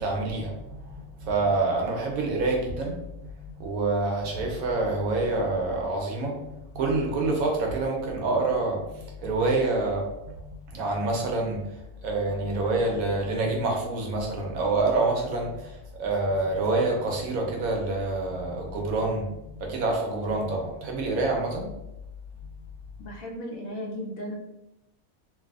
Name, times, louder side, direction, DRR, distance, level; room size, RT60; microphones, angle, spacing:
voice 1, 0.0-11.8 12.0-21.7, right 2 dB, 80° right, 0 dB, 1.1 m, -27 dB
voice 2, 23.0-24.3, equal, 75° left, 0 dB, 1.1 m, -35 dB
3.2 x 2.6 x 2.4 m, 0.91 s
omnidirectional pair, 1.5 m